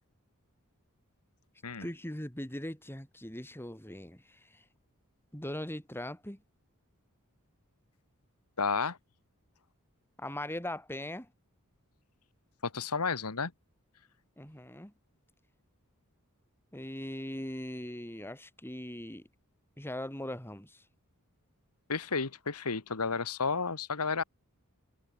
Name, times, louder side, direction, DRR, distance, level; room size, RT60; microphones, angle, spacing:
voice 1, 1.8-4.6 5.3-6.4 10.2-11.3 14.4-14.9 16.7-19.3 19.8-20.8, left 1 dB, 10° left, 4.8 m, -40 dB
voice 2, 8.6-9.0 12.6-13.5 21.9-24.2, left 5 dB, 90° left, 1.6 m, -32 dB
head